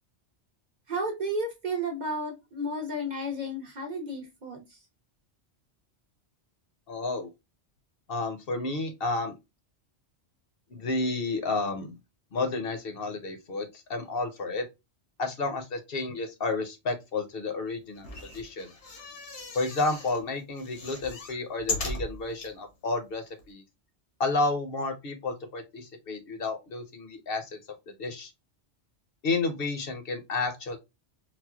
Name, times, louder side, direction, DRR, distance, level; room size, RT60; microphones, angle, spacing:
voice 1, 0.9-4.6, right 1 dB, 45° right, 0.7 m, -32 dB
voice 2, 6.9-7.3 8.1-9.3 10.7-12.0 12.3-14.7 15.2-18.7 19.5-23.6 24.2-27.5 28.0-28.3 29.2-30.8, left 3 dB, 60° left, 0.8 m, -31 dB
sound 1, 18.0-20.2 20.6-22.5 23.1-23.2 23.4-23.5, left 3 dB, 85° left, 1.2 m, -37 dB
4.2 x 2.0 x 2.2 m
omnidirectional pair, 1.2 m